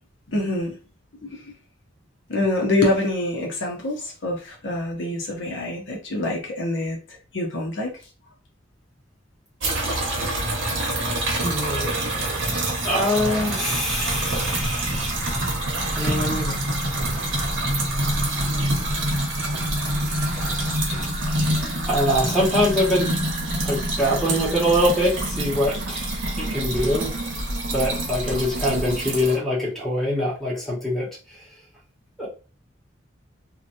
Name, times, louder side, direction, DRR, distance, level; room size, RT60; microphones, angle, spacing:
voice 1, 0.3-0.7 1.2-1.4 2.3-7.9, left 2 dB, 65° left, 0 dB, 0.7 m, -26 dB
sound 1, 9.6-29.4, right 1 dB, 75° right, 0.9 m, -26 dB
voice 2, 11.4-11.9 12.8-15.2 15.9-16.7 21.8-23.1 23.6-27.2 27.7-31.4 32.2-32.3, equal, ahead, -6 dB, 1.0 m, -24 dB
sound 2, 13.8-29.0, equal, 50° right, 0.7 m, -33 dB
2.9 x 2.2 x 2.6 m, 0.34 s
head